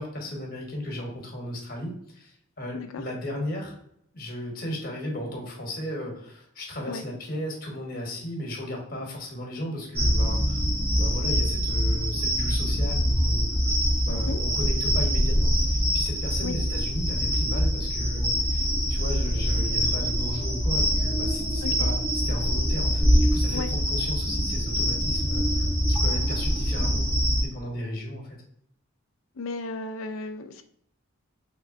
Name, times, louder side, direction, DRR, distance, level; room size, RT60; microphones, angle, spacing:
voice 1, 0.0-3.8 4.1-10.6 11.0-13.7 14.1-28.4, left 1 dB, 45° left, 0 dB, 1.0 m, -35 dB
voice 2, 2.7-3.1 6.9-7.0 14.1-14.4 16.4-16.6 21.6-21.9 23.5-23.7 29.4-30.6, left 3 dB, 75° left, 8 dB, 0.4 m, -34 dB
sound 1, 10.0-27.5, equal, 10° right, 0.5 m, -24 dB
3.6 x 3.2 x 2.5 m, 0.71 s
head